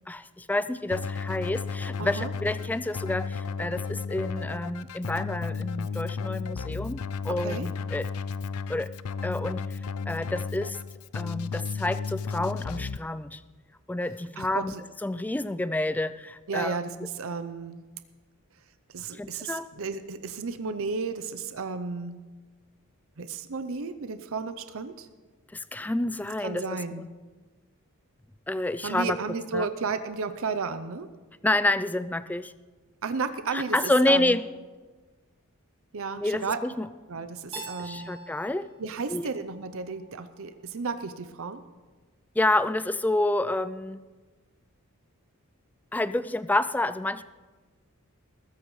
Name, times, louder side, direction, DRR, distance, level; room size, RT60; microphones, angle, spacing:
voice 1, 0.1-8.1 8.7-8.9 9.2-9.8 10.1-10.8 11.1-13.4 13.9-14.7 15.0-16.8 19.1-19.7 25.5-27.1 28.5-29.2 29.5-29.7 31.4-32.5 33.5-34.4 36.2-36.9 37.6-38.7 39.1-39.3 42.4-44.0 45.9-47.2, left 2 dB, 10° left, 14 dB, 0.3 m, -28 dB
Keyboard (musical), 0.9-13.0, left 5 dB, 85° left, 0.5 m, -33 dB
voice 2, 2.0-2.3 7.4-7.7 14.4-14.8 16.5-17.8 18.9-22.2 23.2-25.1 26.4-27.0 28.8-31.1 33.0-33.8 34.1-34.4 35.9-36.6 37.1-38.1 38.8-41.6, right 4 dB, 65° right, 10 dB, 0.6 m, -33 dB
Keyboard (musical) 2, 37.5-40.3, right 2 dB, 25° right, 1.5 m, -45 dB
21.0 x 14.0 x 3.2 m, 1.3 s
head